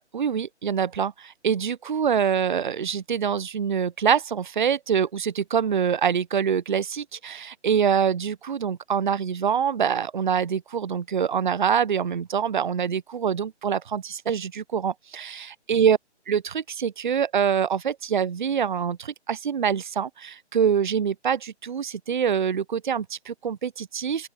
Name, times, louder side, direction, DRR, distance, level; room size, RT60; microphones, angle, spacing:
voice 1, 0.0-16.0 16.3-24.3, right 7 dB, 45° right, 0.7 m, -25 dB
open air
figure-of-eight pair, 140°, 35 cm